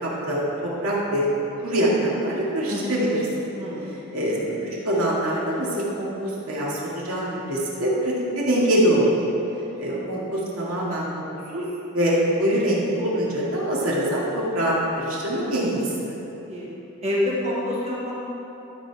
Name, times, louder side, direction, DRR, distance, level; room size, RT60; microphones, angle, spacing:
voice 1, 0.0-1.3 1.6-3.2 4.1-9.1 9.8-11.0 11.5-15.8 16.1-16.2, right 1 dB, 85° right, -6 dB, 2.2 m, -24 dB
voice 2, 2.7-3.0 3.6-3.9 9.5-10.0 16.5-16.7 17.0-18.1, left 1 dB, 30° right, -6 dB, 1.7 m, -28 dB
12.5 x 5.4 x 4.8 m, 3.0 s
head